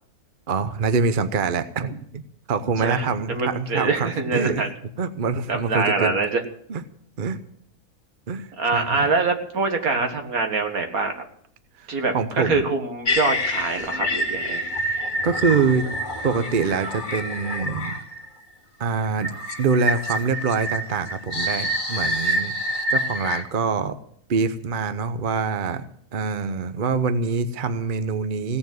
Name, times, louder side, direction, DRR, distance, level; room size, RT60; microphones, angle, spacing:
voice 1, 0.5-2.2 2.5-4.7 5.0-6.1 6.7-6.8 7.2-7.4 8.3-9.1 11.8-12.6 15.2-15.9 16.2-18.0 18.8-19.3 19.6-22.5 22.9-24.0 24.3-25.8 26.1-28.6, right 5 dB, 40° right, 10 dB, 0.9 m, -25 dB
voice 2, 2.8-4.7 5.5-6.4 8.6-11.1 11.9-14.6, right 3 dB, 70° right, 5 dB, 2.1 m, -24 dB
sound 1, 13.0-18.3 19.2-23.4, equal, 35° left, 1.7 m, -27 dB
17.0 x 7.1 x 9.5 m, 0.65 s
omnidirectional pair, 1.6 m